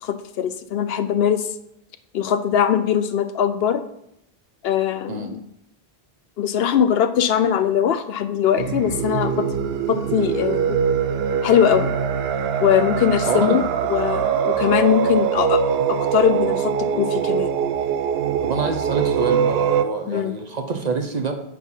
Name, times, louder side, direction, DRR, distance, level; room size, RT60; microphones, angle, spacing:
voice 1, 0.0-1.5 2.1-3.8 4.6-5.4 6.4-9.6 9.9-10.8 11.4-11.9 12.6-13.6 13.9-15.6 15.9-17.6 20.1-20.4, left 9 dB, 70° left, 11 dB, 0.8 m, -21 dB
sound 1, 8.6-19.8, right 7 dB, 75° right, 0.8 m, -22 dB
voice 2, 13.3-13.6 18.4-21.3, right 4 dB, 45° right, 5 dB, 0.8 m, -26 dB
9.4 x 4.2 x 5.5 m, 0.79 s
omnidirectional pair, 1.1 m